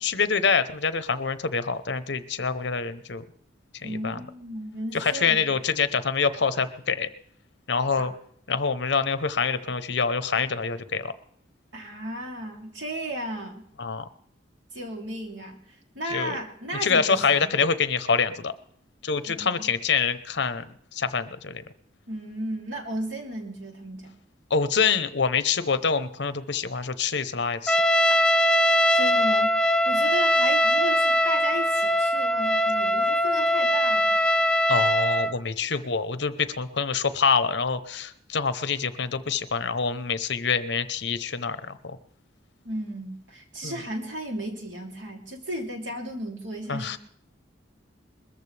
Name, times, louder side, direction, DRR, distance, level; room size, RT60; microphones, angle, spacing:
voice 1, 0.0-3.2 3.8-4.2 4.9-7.1 7.7-8.1 8.5-11.1 13.8-14.1 16.1-16.4 16.8-18.5 19.0-21.6 24.5-27.8 34.7-42.0 43.6-43.8 46.7-47.0, left 5 dB, 65° left, 12 dB, 0.9 m, -26 dB
voice 2, 3.8-5.5 7.9-8.1 11.7-13.6 14.7-15.6 15.9-17.6 19.3-19.7 22.1-24.1 28.1-28.2 28.6-34.2 42.6-47.0, right 1 dB, 85° right, 1 dB, 3.1 m, -35 dB
Trumpet, 27.7-35.3, equal, 5° left, 0.5 m, -21 dB
21.0 x 14.0 x 3.4 m, 0.67 s
head